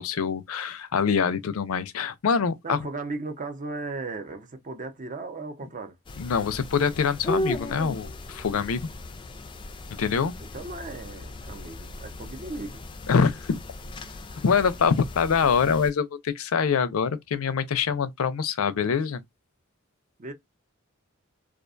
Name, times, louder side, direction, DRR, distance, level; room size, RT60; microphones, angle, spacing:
voice 1, 0.0-2.8 6.2-8.9 10.0-10.3 13.1-13.6 14.4-19.2, left 6 dB, 80° left, 0.5 m, -24 dB
voice 2, 2.6-6.0 10.4-12.8 20.2-20.3, right 3 dB, 40° right, 0.6 m, -36 dB
sound 1, 6.1-15.9, left 1 dB, 25° left, 0.3 m, -37 dB
2.4 x 2.3 x 2.4 m
head